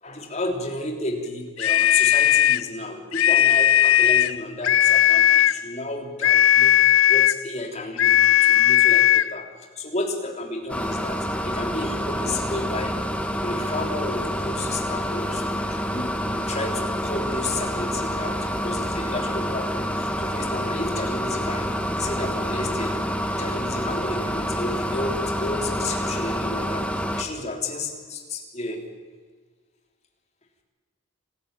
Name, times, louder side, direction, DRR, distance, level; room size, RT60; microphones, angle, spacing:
voice 1, 0.0-6.7 7.1-13.0 13.4-23.1 23.4-26.9 27.1-28.8, left 2 dB, 30° left, 2 dB, 3.4 m, -32 dB
sound 1, 1.6-2.7 3.1-4.4 4.6-5.6 6.2-7.4 8.0-9.3, left 11 dB, 80° left, 0.6 m, -17 dB
sound 2, 10.7-27.2, equal, 5° left, 1.5 m, -27 dB
25.5 x 14.0 x 9.1 m, 1.5 s
head